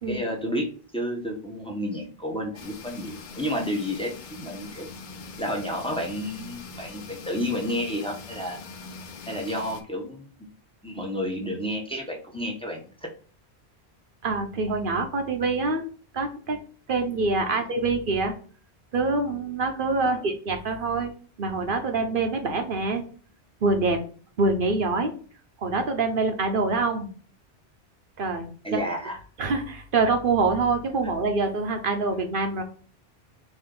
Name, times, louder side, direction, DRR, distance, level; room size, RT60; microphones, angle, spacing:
voice 1, 0.1-4.9 5.4-8.6 9.2-10.3 10.8-13.1 20.0-20.2 28.6-29.2, equal, 5° left, 0 dB, 0.9 m, -31 dB
sound 1, 2.5-9.8, left 4 dB, 55° left, 0.7 m, -42 dB
voice 2, 14.2-15.8 16.1-16.6 16.9-18.3 18.9-23.0 23.6-24.0 24.4-25.1 25.6-27.1 28.2-28.8 29.4-32.6, right 3 dB, 60° right, 5 dB, 0.9 m, -25 dB
4.4 x 2.9 x 3.8 m, 0.40 s
omnidirectional pair, 1.1 m